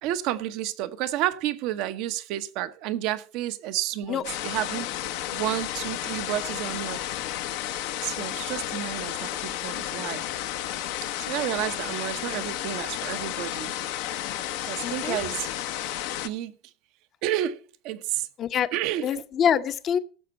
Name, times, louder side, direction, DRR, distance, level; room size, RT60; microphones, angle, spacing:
voice 1, 0.0-4.9 5.3-7.0 8.0-10.2 11.2-13.8 14.7-15.5 16.2-16.5 17.2-17.6 17.8-18.3 18.7-19.2, right 13 dB, 65° right, 1.0 m, -30 dB
sound 1, 4.2-16.3, left 12 dB, 75° left, 0.9 m, -32 dB
voice 2, 14.8-15.2 18.4-18.7 19.0-20.0, left 8 dB, 45° left, 0.9 m, -25 dB
16.5 x 6.8 x 4.3 m
hypercardioid pair, 85°, 0 cm